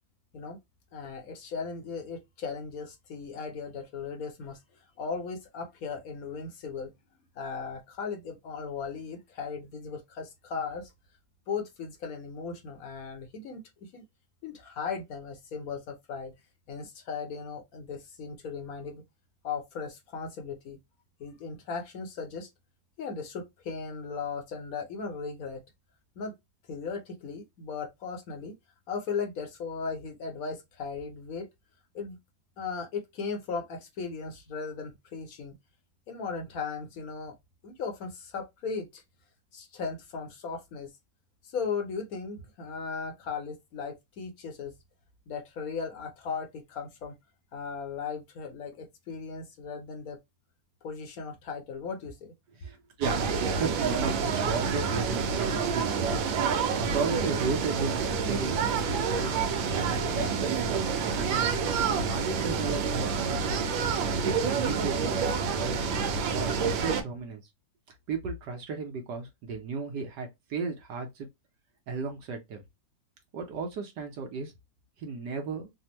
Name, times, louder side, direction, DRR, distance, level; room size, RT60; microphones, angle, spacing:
voice 1, 0.9-4.6 5.0-6.9 7.3-10.9 11.5-14.0 14.4-16.3 16.7-19.0 19.4-20.8 21.2-22.5 23.0-25.6 26.2-26.3 26.7-28.6 28.9-31.5 31.9-32.2 32.6-35.6 36.1-37.3 37.6-39.0 39.5-40.9 41.4-44.7 45.3-47.1 47.5-50.2 50.8-52.3, left 5 dB, 60° left, 1.0 m, -37 dB
voice 2, 52.6-59.3 59.7-61.5 62.1-65.8 66.3-67.4 68.1-71.3 71.9-72.6 73.3-74.5 75.0-75.7, right 4 dB, 65° right, 1.3 m, -35 dB
sound 1, 53.0-67.0, right 5 dB, 85° right, 1.4 m, -28 dB
3.4 x 2.1 x 2.8 m
omnidirectional pair, 2.1 m